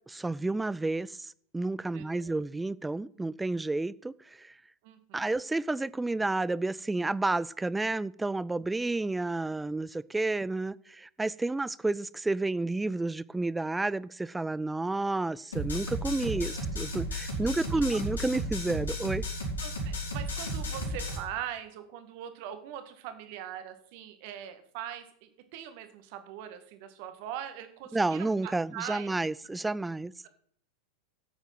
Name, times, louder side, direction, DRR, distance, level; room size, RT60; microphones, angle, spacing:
voice 1, 0.1-4.5 5.1-19.2 27.9-30.1, right 2 dB, 10° right, 0.4 m, -31 dB
voice 2, 1.9-2.3 4.8-5.3 16.2-16.7 17.6-17.7 17.9-18.0 19.6-29.2, right 10 dB, 45° right, 2.0 m, -42 dB
sound 1, 15.5-21.2, equal, 70° left, 4.5 m, -34 dB
13.0 x 8.1 x 5.9 m
figure-of-eight pair, 90°, 0 cm